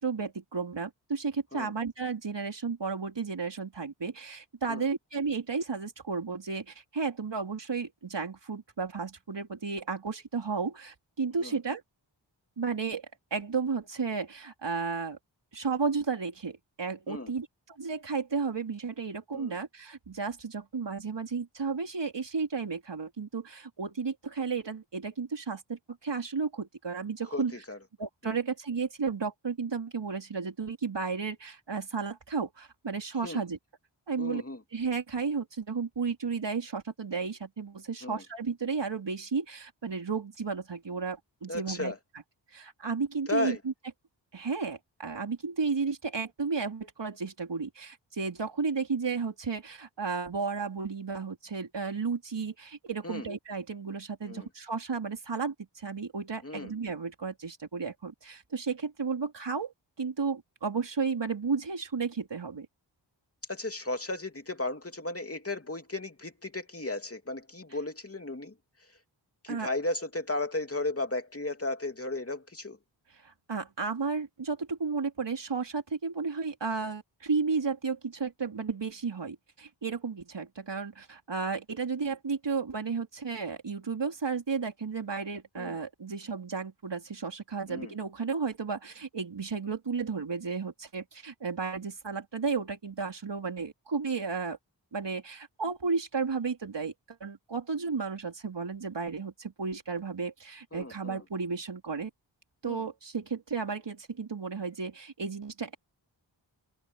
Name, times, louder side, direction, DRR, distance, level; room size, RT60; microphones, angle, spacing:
voice 1, 0.0-11.8 12.6-13.1 13.3-15.2 15.5-27.6 28.0-33.6 34.1-34.4 34.7-41.9 42.5-43.7 44.3-62.7 69.5-69.7 73.2-94.6 94.9-102.1 102.6-105.7, right 5 dB, 65° right, 4.1 m, -33 dB
voice 2, 34.2-34.6 38.0-38.2 41.5-42.0 43.3-43.6 53.0-53.3 54.3-54.5 56.4-56.7 63.5-68.5 69.4-72.8 85.6-85.7 87.7-87.9 100.7-101.2 102.6-102.8, left 2 dB, 30° left, 2.8 m, -35 dB
cardioid pair, 50°, 46 cm